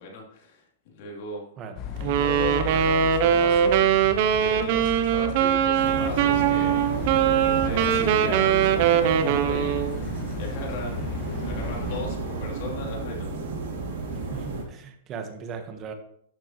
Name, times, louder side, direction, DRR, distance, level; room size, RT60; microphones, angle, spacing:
voice 1, 0.0-1.5 2.0-4.1 4.4-13.3, left 2 dB, 55° left, -1 dB, 3.1 m, -38 dB
voice 2, 1.6-2.2 7.6-8.4 10.7-11.1 14.1-15.9, right 5 dB, 30° right, 6 dB, 1.4 m, -38 dB
sound 1, 1.8-12.0, left 5 dB, 35° left, 1.3 m, -36 dB
Wind instrument woodwind instrument, 2.0-10.0, right 9 dB, 50° right, 0.8 m, -22 dB
sound 2, 5.7-14.6, right 3 dB, 70° right, 3.1 m, -32 dB
11.5 x 7.0 x 3.2 m, 0.69 s
hypercardioid pair, 145°, 0 cm